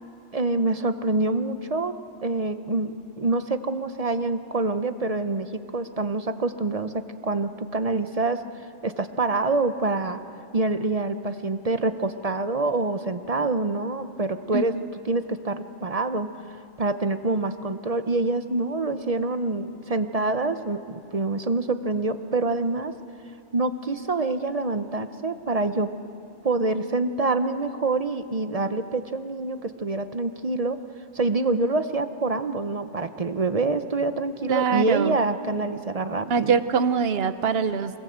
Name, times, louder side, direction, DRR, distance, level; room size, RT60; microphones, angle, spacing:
voice 1, 0.3-8.4 8.8-10.2 10.5-14.8 15.1-16.3 16.8-22.9 23.5-25.9 26.4-30.8 31.1-36.5, right 3 dB, 35° right, 10 dB, 0.7 m, -26 dB
voice 2, 14.5-14.9 34.5-35.2 36.3-38.0, right 6 dB, 60° right, 12 dB, 1.0 m, -24 dB
23.5 x 21.0 x 8.0 m, 2.6 s
omnidirectional pair, 1.2 m